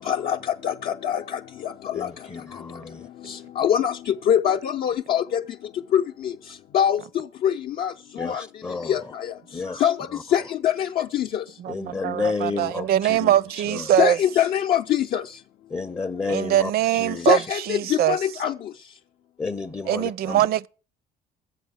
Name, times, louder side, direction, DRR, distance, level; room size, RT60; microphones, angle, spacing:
voice 1, 0.0-2.1 2.5-2.6 3.2-5.4 5.9-9.3 9.7-11.4 14.0-15.4 17.2-18.7, left 9 dB, 60° left, 0.6 m, -24 dB
voice 2, 1.9-3.1 8.2-9.1 9.5-10.4 11.7-14.0 15.7-17.5 19.4-20.5, left 4 dB, 15° left, 0.5 m, -32 dB
voice 3, 11.6-14.2 16.3-17.4 17.7-18.2 19.9-20.7, right 11 dB, 65° right, 0.6 m, -22 dB
13.0 x 8.0 x 6.3 m
cardioid pair, 110°, 17 cm